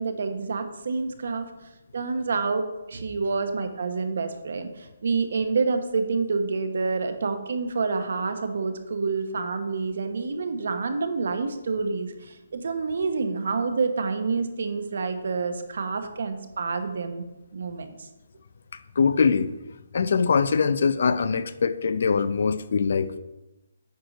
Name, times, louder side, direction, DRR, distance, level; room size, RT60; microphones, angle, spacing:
voice 1, 0.0-1.5 1.9-17.2 17.5-18.1, right 4 dB, 60° right, 8 dB, 1.0 m, -28 dB
voice 2, 19.0-19.5 19.9-23.2, left 5 dB, 50° left, 13 dB, 0.4 m, -22 dB
9.4 x 4.6 x 5.2 m, 1.0 s
hypercardioid pair, 175°, 0 cm